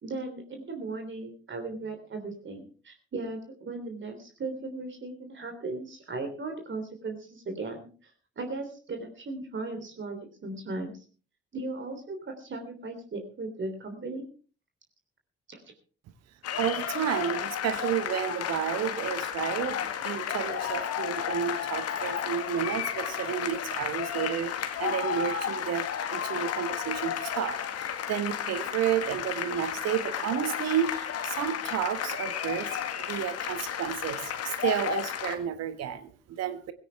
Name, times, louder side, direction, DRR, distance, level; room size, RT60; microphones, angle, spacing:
voice 1, 0.0-8.1 8.4-10.9 11.5-14.3 15.5-15.6, right 3 dB, 40° right, 5 dB, 3.4 m, -37 dB
sound 1, 16.4-35.4, left 9 dB, 55° left, 1.9 m, -33 dB
voice 2, 16.6-36.7, right 10 dB, 60° right, 12 dB, 1.2 m, -31 dB
17.5 x 16.5 x 3.5 m, 0.39 s
figure-of-eight pair, 40°, 29 cm